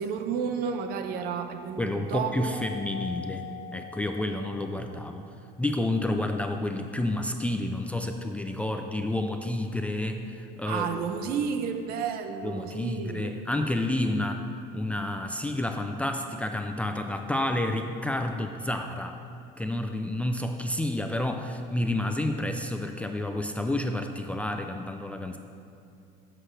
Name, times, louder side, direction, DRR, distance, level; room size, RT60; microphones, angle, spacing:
voice 1, 0.0-2.6 10.7-13.4, right 6 dB, 55° right, 7 dB, 0.8 m, -31 dB
voice 2, 1.8-3.4 3.7-5.2 5.6-11.3 12.4-19.2 19.6-25.4, left 1 dB, 5° left, 4 dB, 0.4 m, -30 dB
Keyboard (musical), 2.5-4.8, left 6 dB, 85° right, 2.5 m, -42 dB
17.0 x 7.7 x 3.3 m, 2.5 s
cardioid pair, 140°, 19 cm